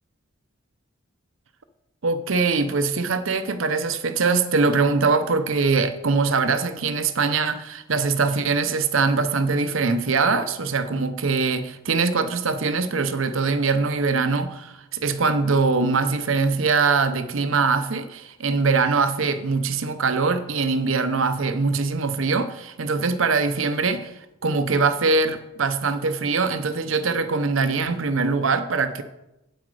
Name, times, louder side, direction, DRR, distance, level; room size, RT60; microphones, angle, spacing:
voice 1, 2.0-24.1 24.4-29.0, right 4 dB, 70° right, 11 dB, 0.7 m, -22 dB
8.8 x 7.9 x 4.8 m, 0.93 s
head